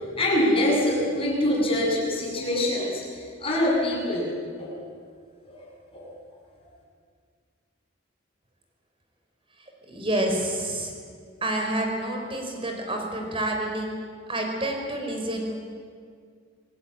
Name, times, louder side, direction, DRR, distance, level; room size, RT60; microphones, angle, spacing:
voice 1, 0.1-4.3 4.6-4.7 5.4-5.6 5.9-6.1, left 1 dB, 30° left, -3 dB, 7.7 m, -24 dB
voice 2, 9.6-10.9 11.4-15.6, right 1 dB, 30° right, 2 dB, 4.8 m, -29 dB
26.5 x 18.5 x 8.9 m, 2.1 s
head